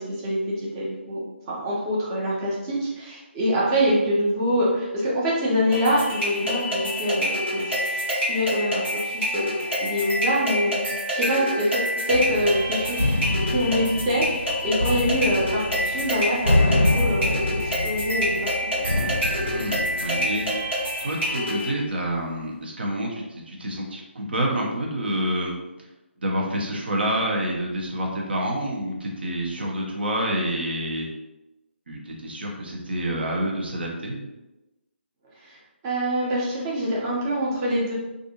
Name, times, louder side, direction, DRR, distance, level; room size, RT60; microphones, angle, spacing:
voice 1, 0.0-13.0 13.5-18.9 35.4-38.0, equal, 20° right, -5 dB, 0.7 m, -25 dB
sound 1, 5.7-21.7, equal, 85° right, 1.4 m, -27 dB
sound 2, 12.1-20.8, left 2 dB, 90° left, 0.5 m, -26 dB
voice 2, 19.5-20.5 21.0-25.5 26.2-31.1 31.9-34.3, right 1 dB, 55° right, -1 dB, 0.7 m, -28 dB
2.5 x 2.5 x 2.7 m, 1.0 s
figure-of-eight pair, 145°, 7 cm